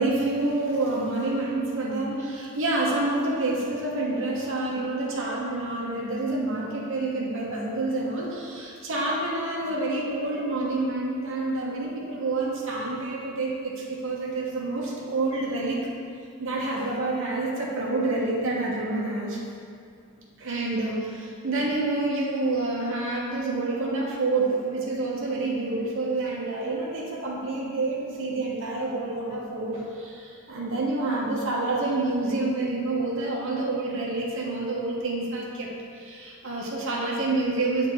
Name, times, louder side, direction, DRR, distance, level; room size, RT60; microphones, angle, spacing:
voice 1, 0.0-15.8 16.4-19.4 20.4-35.7 36.0-37.9, right 2 dB, 60° right, -5 dB, 1.1 m, -28 dB
7.2 x 3.7 x 4.7 m, 2.3 s
head